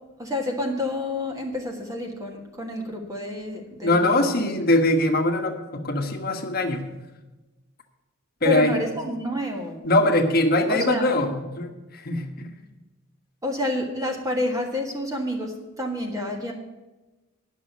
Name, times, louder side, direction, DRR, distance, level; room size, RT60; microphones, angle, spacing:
voice 1, 0.2-4.3 8.4-9.8 10.7-11.2 13.4-16.5, left 2 dB, 15° right, 1 dB, 1.5 m, -29 dB
voice 2, 3.8-6.9 8.4-8.7 9.8-12.5, left 1 dB, 45° left, 5 dB, 1.3 m, -22 dB
11.0 x 6.3 x 8.1 m, 1.1 s
head